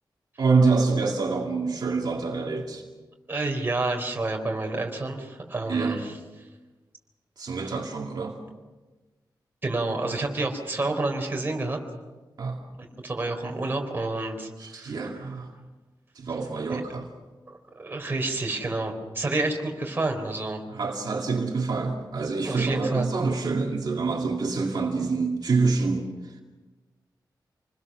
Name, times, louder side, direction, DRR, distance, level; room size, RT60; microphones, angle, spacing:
voice 1, 0.4-2.8 5.7-6.0 7.4-8.4 12.4-12.6 14.6-15.5 16.1-17.1 20.7-26.4, right 4 dB, 60° right, 0 dB, 2.3 m, -26 dB
voice 2, 3.3-6.1 9.6-11.8 13.0-15.0 16.7-16.8 17.5-20.6 22.4-23.1, right 2 dB, 25° right, 2 dB, 3.9 m, -29 dB
28.0 x 21.0 x 6.3 m, 1.2 s
wide cardioid pair, 170°, 8 cm